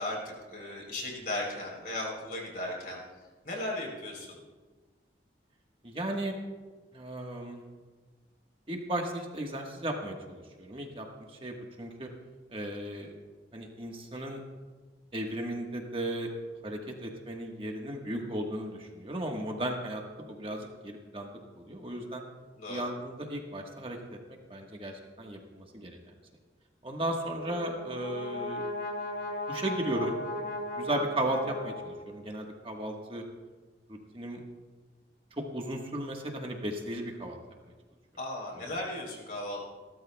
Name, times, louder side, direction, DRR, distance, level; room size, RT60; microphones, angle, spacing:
voice 1, 0.0-3.0 3.4-4.4 22.6-22.9 38.2-39.8, left 1 dB, 50° left, -1 dB, 3.6 m, -36 dB
voice 2, 5.8-6.4 6.9-7.6 8.7-12.1 12.5-13.1 13.5-14.4 15.1-16.3 16.6-21.3 21.7-22.2 22.7-24.2 24.5-26.0 26.8-28.7 29.5-30.1 30.8-33.2 33.9-34.4 35.3-37.4 38.5-38.6, right 1 dB, 30° right, 1 dB, 1.3 m, -35 dB
Brass instrument, 27.2-32.3, left 1 dB, 70° left, 2.2 m, -37 dB
29.0 x 12.5 x 2.3 m, 1.4 s
head